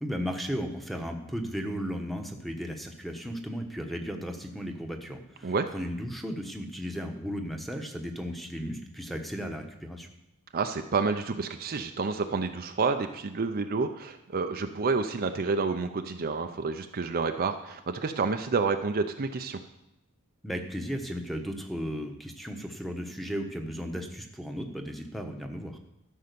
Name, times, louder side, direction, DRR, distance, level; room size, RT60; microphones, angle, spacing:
voice 1, 0.0-10.1 20.4-25.8, equal, ahead, 3 dB, 1.1 m, -35 dB
voice 2, 10.5-19.6, right 4 dB, 45° right, 6 dB, 0.6 m, -29 dB
13.0 x 5.6 x 6.8 m, 0.86 s
head